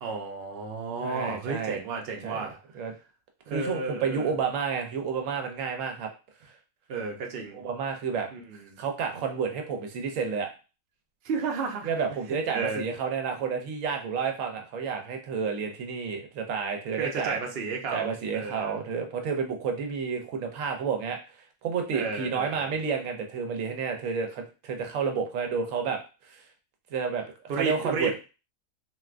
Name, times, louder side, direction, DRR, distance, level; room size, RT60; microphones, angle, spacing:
voice 1, 0.0-2.6 3.5-4.3 6.9-7.6 8.3-8.8 11.2-11.9 12.5-12.9 17.0-18.8 21.9-22.7 27.5-28.2, right 4 dB, 55° right, 1 dB, 0.8 m, -32 dB
voice 2, 1.0-1.8 2.2-2.5 2.7-2.9 3.5-6.1 6.4-6.5 7.5-8.3 8.8-10.5 11.8-17.4 17.9-21.2 21.6-26.0 26.3-26.4 26.9-27.2 27.5-28.2, right 6 dB, 85° right, 4 dB, 1.0 m, -30 dB
3.3 x 2.5 x 2.4 m, 0.32 s
omnidirectional pair, 1.3 m